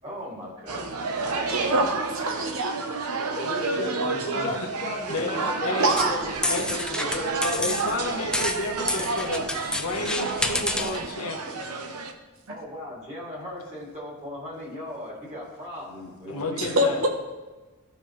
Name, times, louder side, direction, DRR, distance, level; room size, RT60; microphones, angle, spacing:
voice 1, 0.0-1.1 1.6-1.8 12.5-16.9, left 1 dB, 35° right, -4 dB, 2.8 m, -38 dB
sound 1, 0.7-12.1, right 3 dB, 90° right, 0.8 m, -30 dB
voice 2, 1.5-1.9 2.1-2.7 5.8-6.1 16.6-17.1, right 1 dB, 65° right, 3 dB, 1.0 m, -24 dB
voice 3, 3.4-7.6, left 1 dB, 30° left, 2 dB, 1.0 m, -35 dB
voice 4, 4.0-4.7 5.1-5.3 5.6-6.0 6.5-6.7 7.5-11.4 16.3-17.1, left 2 dB, 75° left, 2 dB, 1.1 m, -31 dB
sound 2, 5.9-11.1, left 2 dB, 5° left, 0.4 m, -30 dB
14.5 x 5.3 x 3.2 m, 1.2 s
head